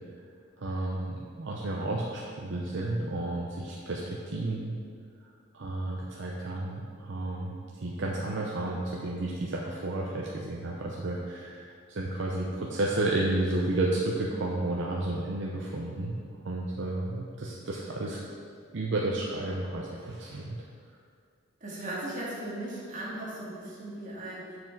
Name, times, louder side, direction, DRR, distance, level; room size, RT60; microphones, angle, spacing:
voice 1, 0.6-4.8 5.2-5.3 5.5-18.2 18.7-20.6, right 2 dB, 65° right, -3 dB, 0.7 m, -32 dB
voice 2, 21.6-24.6, right 1 dB, 40° right, -6 dB, 1.9 m, -37 dB
7.7 x 4.9 x 4.6 m, 2.2 s
head